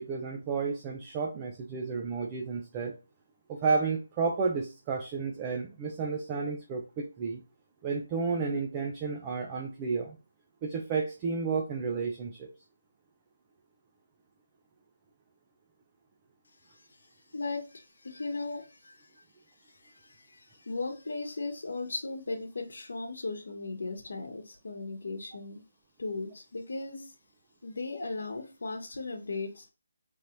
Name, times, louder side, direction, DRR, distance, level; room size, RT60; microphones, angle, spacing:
voice 1, 0.0-2.9 3.5-7.4 7.8-10.2 10.6-12.5, right 4 dB, 15° right, 0.4 m, -32 dB
voice 2, 16.7-19.1 19.7-25.6 26.0-27.1 27.6-29.7, left 3 dB, 70° left, 1.0 m, -37 dB
3.9 x 3.2 x 2.9 m
hypercardioid pair, 175°, 0 cm